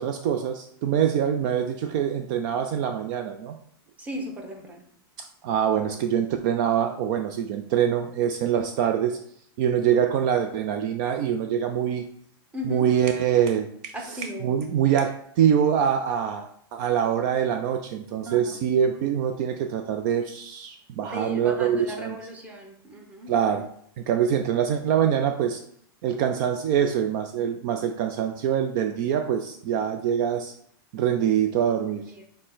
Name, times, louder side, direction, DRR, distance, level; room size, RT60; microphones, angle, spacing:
voice 1, 0.0-3.6 5.2-9.2 9.6-12.0 12.6-22.2 23.3-23.7 24.0-25.6 26.0-30.5 30.9-32.0, right 9 dB, 50° right, 6 dB, 0.4 m, -24 dB
voice 2, 4.0-4.8 12.5-12.9 13.9-14.6 18.3-18.4 21.0-23.3, equal, 10° right, 1 dB, 0.8 m, -36 dB
6.3 x 2.1 x 3.9 m, 0.65 s
supercardioid pair, 145°, 13 cm